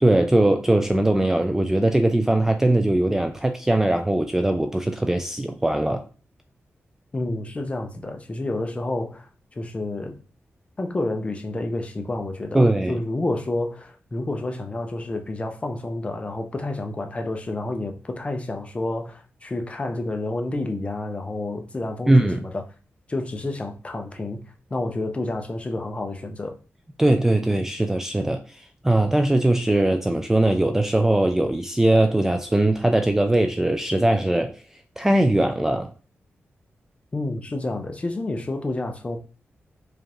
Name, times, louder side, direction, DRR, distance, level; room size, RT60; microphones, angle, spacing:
voice 1, 0.0-6.0 12.5-13.0 22.1-22.4 27.0-34.5 35.0-35.9, right 1 dB, 10° right, 0.3 m, -20 dB
voice 2, 7.1-10.2 10.8-22.6 23.1-24.4 24.7-26.6 37.1-39.2, left 2 dB, 25° left, 0.6 m, -29 dB
4.9 x 2.5 x 2.9 m
wide cardioid pair, 125°, 5 cm